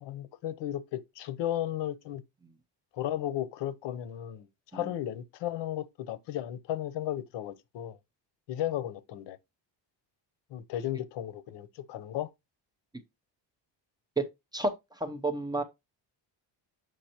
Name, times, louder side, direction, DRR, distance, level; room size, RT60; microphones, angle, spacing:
voice 1, 0.0-2.2 2.9-4.5 4.7-8.0 8.5-9.4 10.5-12.3, left 12 dB, 75° left, 0.8 m, -34 dB
voice 2, 14.5-15.6, right 2 dB, 10° right, 0.6 m, -31 dB
7.8 x 5.2 x 2.9 m
cardioid pair, 165°, 43 cm